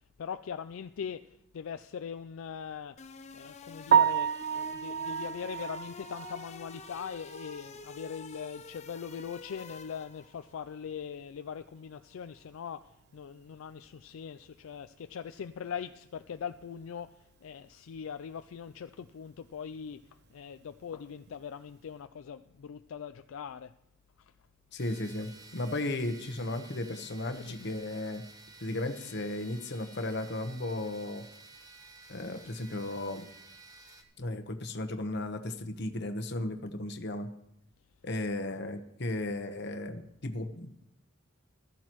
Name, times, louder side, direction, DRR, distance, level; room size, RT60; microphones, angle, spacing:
voice 1, 0.2-1.2 1.5-2.9 3.3-12.8 13.1-17.1 17.4-20.0 20.3-23.7 26.5-26.6 27.3-27.7, left 7 dB, 75° left, 9 dB, 0.4 m, -41 dB
sound 1, 3.0-10.4, left 3 dB, 35° left, 0.6 m, -48 dB
Piano, 3.9-7.9 8.2-8.3 8.8-8.9 9.3-9.4 12.5-12.6 21.1-21.3, right 8 dB, 55° right, 0.4 m, -30 dB
voice 2, 24.7-28.2 28.6-31.2 32.1-33.3 34.2-37.3 38.0-40.7, left 2 dB, 55° left, 6 dB, 1.0 m, -35 dB
sound 2, 24.8-34.0, right 3 dB, 20° right, 1.0 m, -53 dB
15.0 x 13.0 x 3.1 m, 0.79 s
head